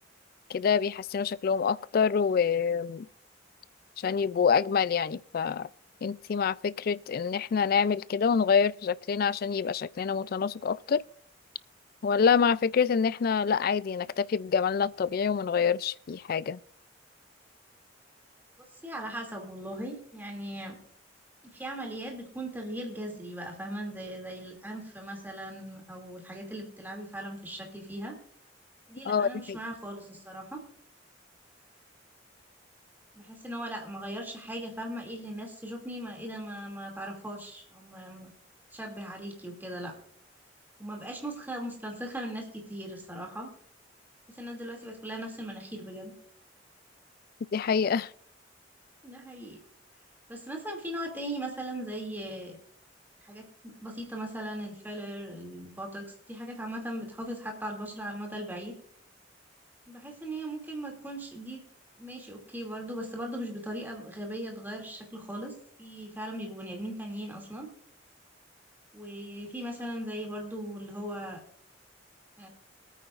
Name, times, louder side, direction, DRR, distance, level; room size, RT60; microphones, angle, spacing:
voice 1, 0.5-3.1 4.0-5.7 6.0-11.0 12.0-16.6 29.0-29.6 47.5-48.1, left 6 dB, 50° left, 0.3 m, -26 dB
voice 2, 18.8-20.8 21.4-28.2 28.9-30.6 33.2-38.3 38.7-39.9 40.8-43.5 44.3-46.1 49.0-49.6 50.3-52.6 53.2-58.7 59.9-61.6 62.0-65.5 65.8-67.7 68.9-71.4 72.4-72.5, right 1 dB, 10° right, 2.5 m, -38 dB
23.5 x 9.2 x 2.5 m
head